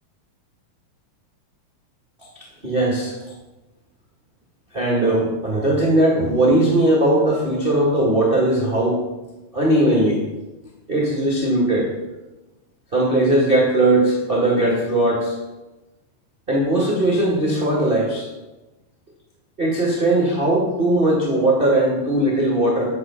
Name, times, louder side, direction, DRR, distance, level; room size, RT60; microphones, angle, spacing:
voice 1, 2.6-3.1 4.7-9.0 9.5-10.2 10.9-11.9 12.9-15.4 16.5-18.3 19.6-22.9, right 1 dB, 65° right, -4 dB, 0.5 m, -19 dB
9.5 x 5.6 x 5.6 m, 1.1 s
omnidirectional pair, 4.1 m